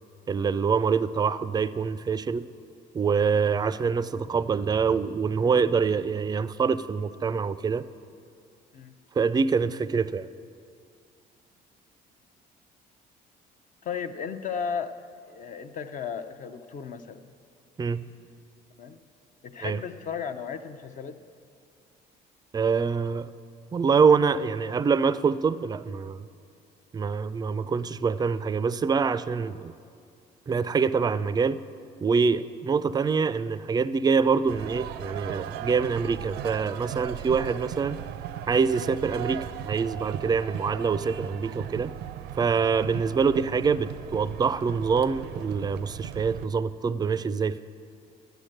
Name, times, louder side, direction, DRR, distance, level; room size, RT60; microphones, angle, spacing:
voice 1, 0.3-2.4 2.9-7.8 9.2-10.3 17.8-18.0 19.6-19.8 22.5-23.3 23.7-26.2 26.9-29.7 30.5-31.6 32.0-38.0 38.5-41.9 42.4-47.6, right 5 dB, 25° right, 15 dB, 0.4 m, -25 dB
voice 2, 13.8-14.9 15.3-17.2 18.8-19.0 19.4-21.2 27.6-27.8, left 6 dB, 50° left, 9 dB, 0.6 m, -35 dB
sound 1, 34.5-46.5, right 11 dB, 85° right, 0.5 m, -37 dB
13.0 x 8.9 x 6.5 m, 2.4 s
cardioid pair, 110°, 17 cm